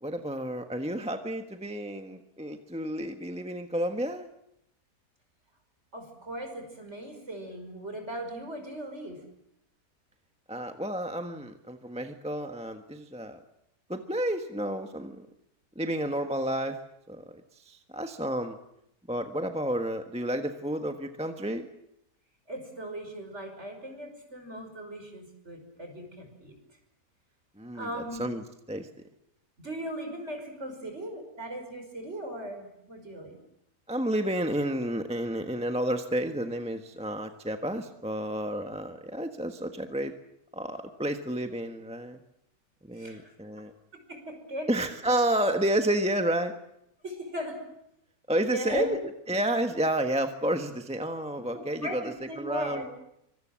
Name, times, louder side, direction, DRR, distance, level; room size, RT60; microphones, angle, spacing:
voice 1, 0.0-4.3 10.5-13.4 13.9-15.3 15.7-16.8 17.1-17.2 17.6-18.6 19.1-21.7 27.6-28.9 33.9-40.1 40.5-42.2 42.9-43.7 44.7-46.5 48.3-49.0 49.3-52.0 52.4-52.8, right 1 dB, 5° right, 6 dB, 1.2 m, -30 dB
voice 2, 5.9-9.2 22.5-26.5 27.7-28.3 29.6-33.4 43.0-43.3 44.1-44.7 47.0-47.6 48.4-48.9 51.5-52.9, right 1 dB, 45° right, 5 dB, 6.0 m, -38 dB
25.0 x 23.5 x 7.6 m, 0.79 s
omnidirectional pair, 1.6 m